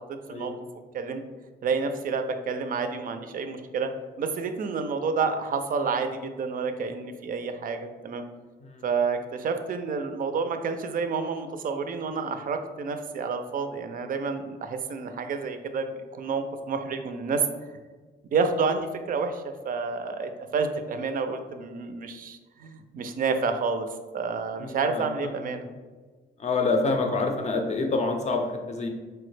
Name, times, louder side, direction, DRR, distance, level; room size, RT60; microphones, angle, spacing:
voice 1, 0.3-0.6 8.6-8.9 24.6-25.3 26.4-28.9, left 3 dB, 35° left, 4 dB, 0.5 m, -27 dB
voice 2, 1.6-3.9 4.2-8.2 8.8-17.4 18.2-23.9 24.1-25.7, right 5 dB, 45° right, 7 dB, 0.4 m, -29 dB
4.3 x 2.0 x 3.2 m, 1.4 s
cardioid pair, 90°, 20 cm